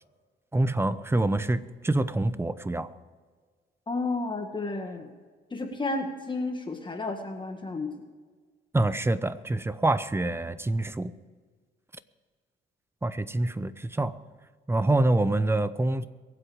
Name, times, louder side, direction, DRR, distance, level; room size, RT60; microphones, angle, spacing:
voice 1, 0.5-2.9 8.7-11.1 13.0-14.2 14.7-16.1, right 2 dB, 10° right, 0.8 m, -26 dB
voice 2, 3.9-5.1 5.5-7.9, left 3 dB, 25° left, 1.9 m, -32 dB
23.0 x 7.9 x 5.1 m
cardioid pair, 90°, 20 cm